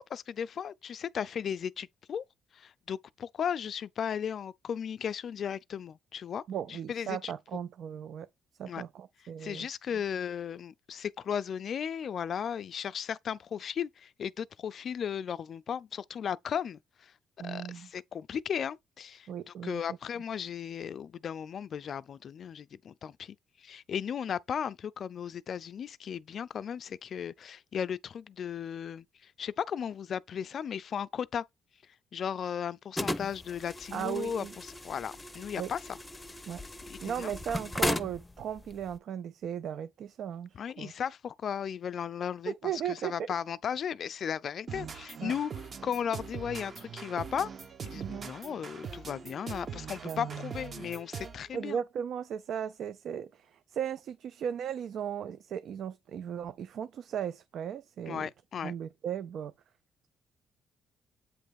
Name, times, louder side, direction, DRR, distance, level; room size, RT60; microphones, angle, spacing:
voice 1, 0.0-2.2 2.5-6.4 6.9-7.3 8.7-8.8 9.4-17.1 17.4-31.4 32.1-35.8 36.9-37.3 40.6-42.5 42.9-45.5 45.8-47.5 47.8-51.8 58.1-58.7, left 8 dB, 55° left, 0.4 m, -36 dB
voice 2, 6.5-8.3 8.6-9.7 17.4-17.9 19.3-19.8 33.9-34.5 35.6-35.7 36.5-36.6 37.0-40.9 42.5-43.2 45.2-45.3 47.9-48.3 50.0-50.9 51.5-58.3 58.6-59.5, right 8 dB, 70° right, 0.5 m, -37 dB
sound 1, 33.0-39.0, left 1 dB, 15° left, 0.6 m, -37 dB
sound 2, 44.7-51.5, right 6 dB, 45° right, 1.2 m, -42 dB
8.2 x 3.1 x 5.2 m
cardioid pair, 90°, 0 cm